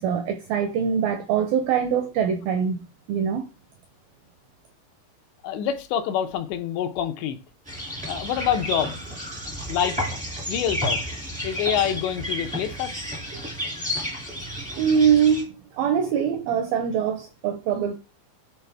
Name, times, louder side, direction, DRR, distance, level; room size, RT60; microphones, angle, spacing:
voice 1, 0.0-3.5 14.7-17.9, right 7 dB, 85° right, 2.1 m, -23 dB
voice 2, 5.4-7.4 8.1-9.0 9.7-10.0 10.5-11.0 11.4-13.1, left 9 dB, 80° left, 3.0 m, -26 dB
sound 1, 7.7-15.4, equal, 10° right, 0.4 m, -31 dB
10.5 x 4.2 x 3.4 m
omnidirectional pair, 5.1 m